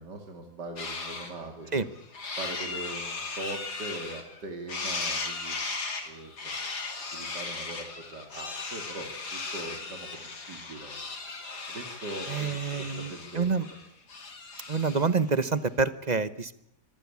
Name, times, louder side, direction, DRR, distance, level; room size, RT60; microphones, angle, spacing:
voice 1, 0.0-1.9 2.4-5.6 6.0-6.5 7.1-10.9 11.7-13.5, right 2 dB, 85° right, 4 dB, 3.2 m, -41 dB
sound 1, 0.8-1.3 1.7-4.4 4.7-15.2, left 3 dB, 75° left, 3.5 m, -37 dB
voice 2, 12.3-13.7 14.7-16.6, right 4 dB, 30° right, 15 dB, 0.9 m, -27 dB
25.0 x 18.0 x 8.5 m, 0.73 s
omnidirectional pair, 1.8 m